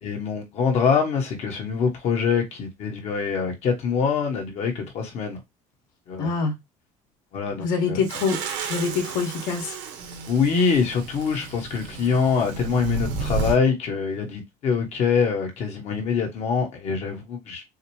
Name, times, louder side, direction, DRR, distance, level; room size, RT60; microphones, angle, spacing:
voice 1, 0.0-5.4 6.1-6.3 7.3-8.0 10.3-17.6, left 5 dB, 50° left, 1.3 m, -24 dB
voice 2, 6.2-6.6 7.6-9.8, left 5 dB, 70° left, 2.0 m, -25 dB
sound 1, 8.0-13.6, right 5 dB, 90° right, 1.6 m, -32 dB
6.3 x 2.1 x 3.1 m
cardioid pair, 135°, 14 cm